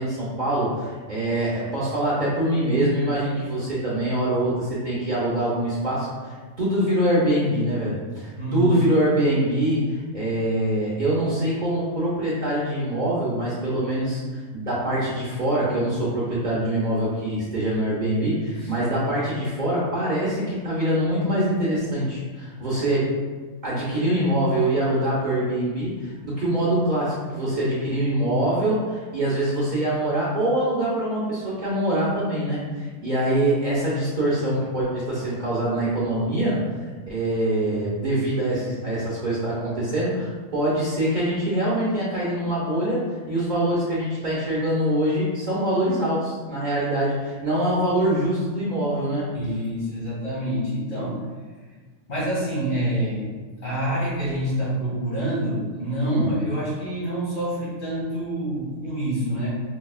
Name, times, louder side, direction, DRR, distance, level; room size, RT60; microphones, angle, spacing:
voice 1, 0.0-23.1 23.6-36.6 37.1-49.3 56.0-56.3, right 1 dB, 45° right, -8 dB, 0.7 m, -24 dB
voice 2, 8.4-8.8 18.6-18.7 49.3-51.2 52.1-53.3 53.6-59.5, right 1 dB, 70° left, -8 dB, 2.1 m, -27 dB
4.7 x 2.2 x 2.3 m, 1.4 s
omnidirectional pair, 1.3 m